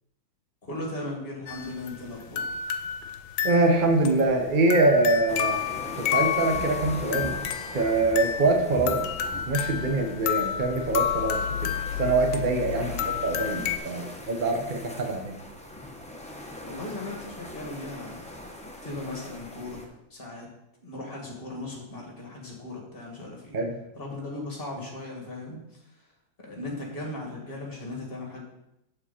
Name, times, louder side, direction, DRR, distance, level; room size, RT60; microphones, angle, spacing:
voice 1, 0.6-2.6 12.7-13.1 16.6-19.8 20.1-20.5 20.8-23.6 23.9-25.6 26.4-28.4, left 2 dB, 30° left, -1 dB, 2.2 m, -37 dB
sound 1, 1.5-13.8, left 9 dB, 90° left, 1.4 m, -31 dB
voice 2, 3.4-7.4 7.7-9.1 9.5-12.9 13.2-15.3 23.5-23.7, right 2 dB, 40° right, 4 dB, 0.7 m, -24 dB
sound 2, 5.3-19.9, left 1 dB, 5° left, 0.5 m, -41 dB
7.5 x 7.3 x 4.3 m, 0.87 s
omnidirectional pair, 2.1 m